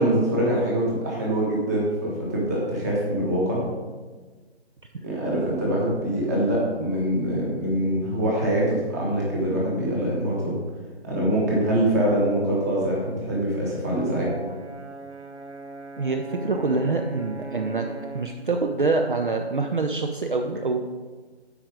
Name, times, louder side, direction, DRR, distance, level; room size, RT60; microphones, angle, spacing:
voice 1, 0.0-3.6 5.0-10.6 11.0-14.3, right 1 dB, 15° right, -4 dB, 1.2 m, -24 dB
Brass instrument, 14.2-18.4, right 2 dB, 90° right, 0.9 m, -39 dB
voice 2, 16.0-17.9 18.1-20.9, right 3 dB, 50° right, 4 dB, 0.5 m, -25 dB
8.5 x 4.8 x 4.9 m, 1.4 s
figure-of-eight pair, 155°, 33 cm